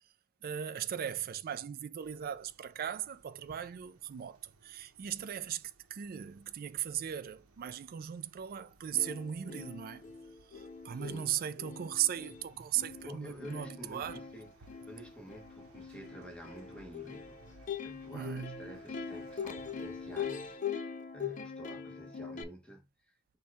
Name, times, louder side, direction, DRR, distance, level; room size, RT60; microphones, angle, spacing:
voice 1, 0.4-10.0 10.5-14.2 18.1-18.7, right 10 dB, 45° right, 0.3 m, -37 dB
sound 1, 2.0-20.6, right 2 dB, 90° right, 0.8 m, -62 dB
Plucked string instrument, 8.6-8.7 8.9-22.4, left 7 dB, 35° left, 0.4 m, -43 dB
voice 2, 13.0-23.4, equal, 5° left, 1.0 m, -49 dB
4.4 x 2.3 x 4.7 m
head